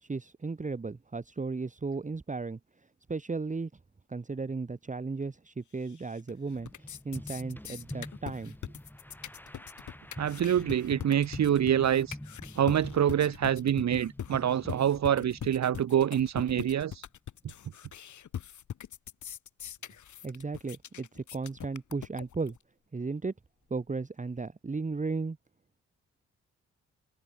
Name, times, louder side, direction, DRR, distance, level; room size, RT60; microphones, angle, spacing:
voice 1, 0.0-2.6 3.1-3.7 4.1-6.7 7.0-8.5 20.2-22.6 22.9-23.3 23.7-25.4, right 4 dB, 25° right, 1.3 m, -35 dB
sound 1, 5.9-6.3 6.6-22.6, left 9 dB, 70° left, 5.7 m, -42 dB
sound 2, 6.5-16.9, left 1 dB, 5° left, 3.6 m, -46 dB
voice 2, 10.2-12.2 12.6-17.0, right 10 dB, 60° right, 1.2 m, -26 dB
supercardioid pair, 50°, 31 cm